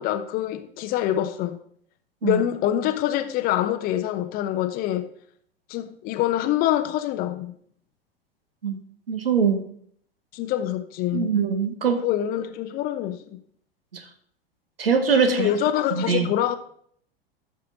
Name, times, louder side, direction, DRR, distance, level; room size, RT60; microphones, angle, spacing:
voice 1, 0.0-1.6 2.2-5.1 5.7-7.5 10.3-11.3 11.9-13.4 15.3-16.6, left 12 dB, 30° left, 0.7 m, -25 dB
voice 2, 9.1-9.6 11.1-12.1 13.9-14.0 14.8-15.5 15.9-16.3, right 6 dB, 70° right, 1.4 m, -22 dB
12.5 x 6.6 x 4.0 m
figure-of-eight pair, 90°, 30 cm